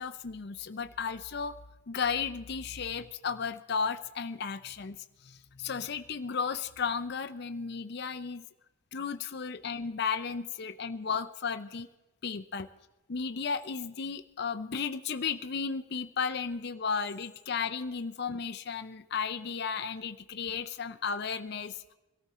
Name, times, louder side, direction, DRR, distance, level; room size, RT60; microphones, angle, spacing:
voice 1, 0.0-1.6 1.9-5.0 5.2-8.4 8.9-11.9 12.2-12.7 13.1-21.8, left 5 dB, 50° left, 9 dB, 0.5 m, -34 dB
22.0 x 13.5 x 4.2 m, 1.0 s
head